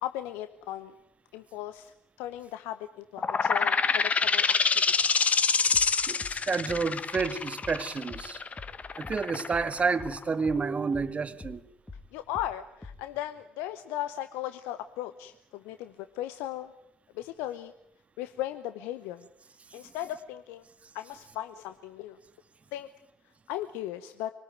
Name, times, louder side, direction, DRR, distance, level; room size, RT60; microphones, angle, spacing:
voice 1, 0.0-0.9 1.3-1.9 2.2-4.5 12.1-16.7 17.1-17.7 18.2-19.3 19.7-20.6 20.9-22.2 22.7-22.9 23.5-24.3, left 13 dB, 70° left, 0.8 m, -37 dB
sound 1, 3.2-10.5, left 5 dB, 35° left, 1.1 m, -26 dB
sound 2, 5.7-10.7 10.9-13.2, left 3 dB, 20° left, 2.3 m, -45 dB
voice 2, 6.1-8.4 9.0-11.6, right 4 dB, 35° right, 1.7 m, -30 dB
24.0 x 18.5 x 9.3 m
hypercardioid pair, 50°, 4 cm